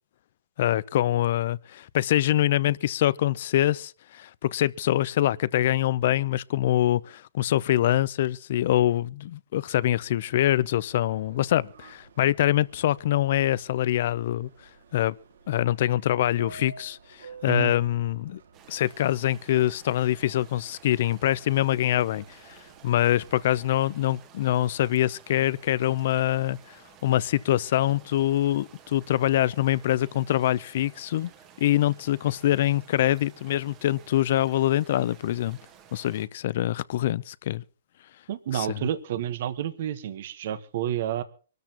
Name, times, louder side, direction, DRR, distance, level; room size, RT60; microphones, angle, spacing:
voice 1, 0.6-14.5 14.9-15.1 15.5-18.4 18.7-31.3 31.6-35.6 35.9-37.6 38.5-38.9, left 13 dB, 45° left, 0.6 m, -24 dB
Subway metro underground, 9.9-23.7, right 4 dB, 75° right, 2.1 m, -52 dB
sound 1, 18.5-36.3, right 8 dB, 20° right, 1.5 m, -54 dB
voice 2, 38.3-41.2, right 10 dB, 45° right, 1.3 m, -29 dB
25.0 x 13.0 x 3.0 m
hypercardioid pair, 165°, 0 cm